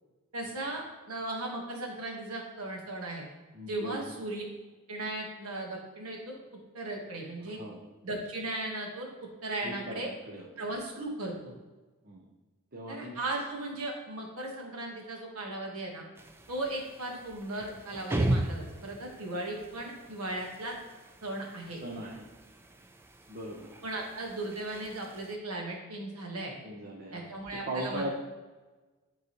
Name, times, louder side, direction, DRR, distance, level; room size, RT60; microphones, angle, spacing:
voice 1, 0.3-3.3 3.7-4.4 4.9-6.4 6.7-7.6 8.0-9.1 9.4-10.1 10.6-11.5 12.9-16.1 16.5-20.8 21.2-21.8 23.8-26.5 27.1-28.1, right 2 dB, 80° right, 0 dB, 1.4 m, -37 dB
voice 2, 3.5-4.0 7.6-7.8 9.6-10.5 12.0-12.2 12.7-13.2 21.8-22.3 23.3-23.7 26.6-27.3 27.7-28.1, right 1 dB, 45° right, -1 dB, 0.8 m, -39 dB
sound 1, 16.2-25.4, right 1 dB, 10° right, 0.3 m, -38 dB
9.9 x 3.8 x 3.0 m, 1.2 s
head